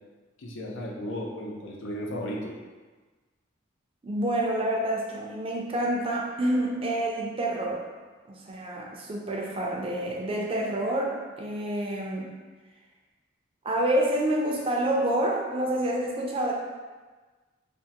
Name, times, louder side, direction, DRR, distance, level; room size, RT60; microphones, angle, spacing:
voice 1, 0.4-2.6, equal, 75° left, -1 dB, 0.5 m, -35 dB
voice 2, 4.0-7.8 8.3-12.3 13.6-16.5, right 1 dB, 30° right, -2 dB, 0.4 m, -28 dB
3.4 x 2.1 x 2.8 m, 1.3 s
head